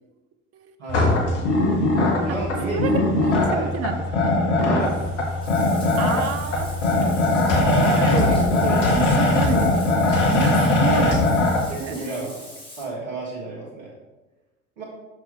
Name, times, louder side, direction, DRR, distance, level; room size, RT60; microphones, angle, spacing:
voice 1, 0.8-1.1 2.2-3.7 4.6-5.0 8.5-9.2 10.0-10.3 11.7-12.4 12.8-13.9 14.8-14.9, right 3 dB, 60° right, -4 dB, 1.5 m, -32 dB
sound 1, 0.9-11.6, left 2 dB, 60° left, 1.5 m, -20 dB
voice 2, 3.5-4.3 6.0-6.9 7.4-8.5 8.8-9.7 10.3-11.2 11.8-12.3, right 7 dB, 35° right, 9 dB, 0.7 m, -29 dB
Bathtub (filling or washing), 4.8-12.8, left 1 dB, 10° left, 2.0 m, -42 dB
5.9 x 5.9 x 3.7 m, 1.1 s
figure-of-eight pair, 70°, 40 cm